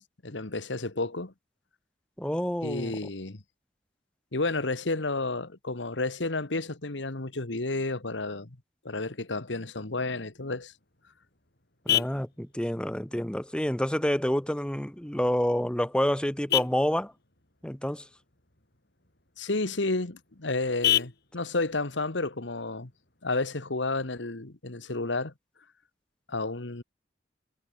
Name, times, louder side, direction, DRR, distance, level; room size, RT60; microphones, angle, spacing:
voice 1, 0.0-1.3 2.6-3.4 4.3-8.6 8.9-10.7 19.4-22.9 23.2-25.3 26.3-26.8, left 2 dB, 80° left, 1.8 m, -31 dB
voice 2, 2.2-3.0 11.9-17.1 17.6-18.1, equal, 5° left, 0.9 m, -28 dB
Vehicle horn car horn honking, 10.6-23.6, left 12 dB, 60° left, 5.3 m, -35 dB
head